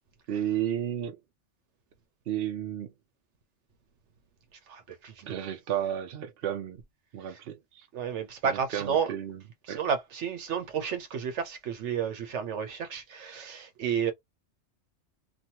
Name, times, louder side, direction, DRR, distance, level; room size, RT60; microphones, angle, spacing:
voice 1, 0.3-1.2 2.3-2.9 5.3-6.8 7.1-7.9 8.4-9.4 9.7-9.8, right 10 dB, 60° right, 0.8 m, -32 dB
voice 2, 4.5-5.4 7.3-7.4 7.9-9.1 9.6-14.1, right 7 dB, 80° right, 1.1 m, -32 dB
2.8 x 2.3 x 2.8 m
omnidirectional pair, 1.2 m